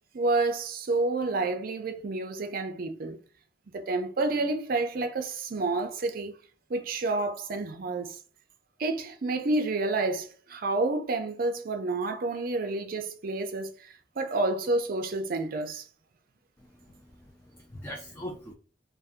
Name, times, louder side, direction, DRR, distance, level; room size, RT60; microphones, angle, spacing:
voice 1, 0.1-3.2 3.7-6.4 6.7-8.2 8.8-15.9, right 2 dB, 50° right, 0.5 m, -29 dB
voice 2, 16.8-18.5, equal, 10° left, 0.3 m, -42 dB
2.6 x 2.1 x 3.5 m
head